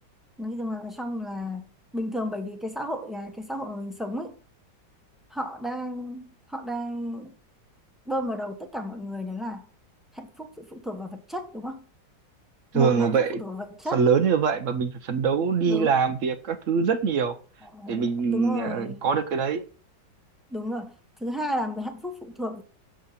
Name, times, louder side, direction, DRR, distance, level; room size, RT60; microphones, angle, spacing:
voice 1, 0.4-4.3 5.3-7.3 8.1-9.7 10.1-11.8 12.7-14.1 15.7-15.9 17.6-19.0 20.5-22.6, equal, ahead, 0.7 m, -33 dB
voice 2, 12.7-13.4 13.9-17.3 17.9-19.6, right 6 dB, 70° right, 0.7 m, -23 dB
7.1 x 6.5 x 4.0 m
omnidirectional pair, 2.0 m